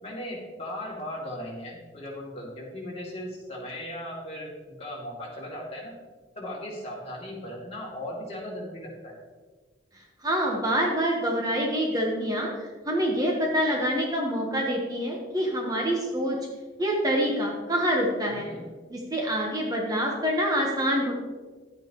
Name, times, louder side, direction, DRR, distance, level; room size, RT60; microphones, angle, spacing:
voice 1, 0.0-6.0 6.3-9.1 18.3-18.7, left 1 dB, 35° left, -4 dB, 2.6 m, -37 dB
voice 2, 9.9-16.4 16.8-18.5 18.9-21.1, equal, 20° right, -1 dB, 1.1 m, -26 dB
11.5 x 8.7 x 3.0 m, 1.4 s
head